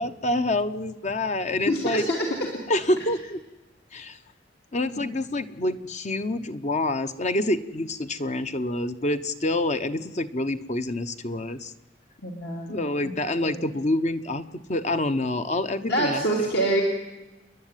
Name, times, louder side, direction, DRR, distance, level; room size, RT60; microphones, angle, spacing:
voice 1, 0.0-2.0 2.7-3.4 3.9-4.2 4.7-11.7 12.7-14.4 14.7-16.5, left 1 dB, 40° left, 10 dB, 1.0 m, -27 dB
voice 2, 1.7-2.3 12.2-12.8 13.4-13.7 15.9-16.8, right 1 dB, 65° left, -1 dB, 3.1 m, -25 dB
29.5 x 11.0 x 9.1 m, 1.1 s
head